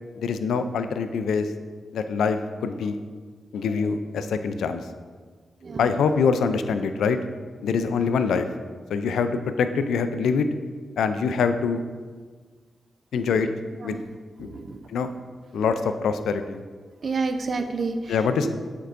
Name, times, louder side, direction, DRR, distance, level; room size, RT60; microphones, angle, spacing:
voice 1, 0.2-1.5 1.9-3.0 3.5-4.8 5.8-7.2 7.6-8.4 8.9-9.3 9.6-10.5 11.0-11.8 13.1-13.5 13.8-14.0 14.4-14.6 14.9-15.1 15.5-16.6 18.1-18.5, left 5 dB, 85° left, 9 dB, 0.3 m, -24 dB
voice 2, 14.4-14.8 17.0-18.5, right 4 dB, 55° right, 7 dB, 0.5 m, -30 dB
9.2 x 4.5 x 2.5 m, 1.5 s
cardioid pair, 55°, 0 cm